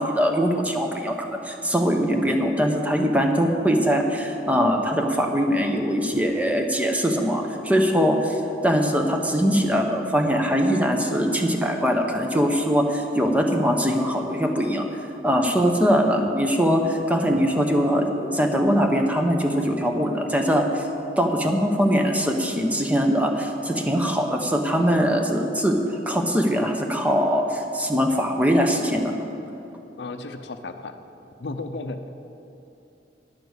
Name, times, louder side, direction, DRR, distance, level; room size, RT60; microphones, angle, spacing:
voice 1, 0.0-14.9 15.2-20.9 21.2-29.2, equal, 10° right, 3 dB, 0.8 m, -22 dB
voice 2, 30.0-31.0 31.4-32.1, left 2 dB, 75° left, 8 dB, 0.6 m, -34 dB
10.5 x 6.8 x 8.1 m, 2.8 s
head